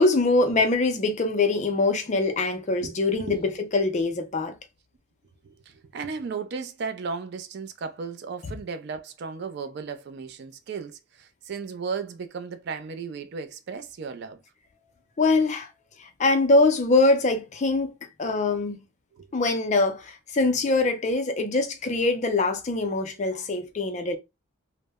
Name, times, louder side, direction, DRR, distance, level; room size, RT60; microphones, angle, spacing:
voice 1, 0.0-4.6 15.2-15.7 16.0-17.9 18.2-18.8 19.3-24.2, left 3 dB, 35° left, 0.4 m, -23 dB
voice 2, 2.8-3.4 5.7-14.4 19.2-19.3, right 5 dB, 50° right, 0.3 m, -35 dB
2.0 x 2.0 x 3.3 m
head